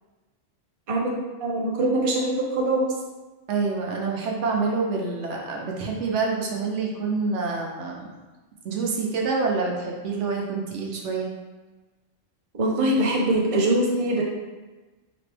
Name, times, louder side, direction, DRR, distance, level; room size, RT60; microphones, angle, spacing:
voice 1, 0.9-2.9 12.5-14.2, right 1 dB, 35° right, -2 dB, 0.7 m, -23 dB
voice 2, 3.5-8.1 8.6-11.3, right 4 dB, 75° right, -1 dB, 1.1 m, -27 dB
5.1 x 3.0 x 3.3 m, 1.2 s
omnidirectional pair, 1.2 m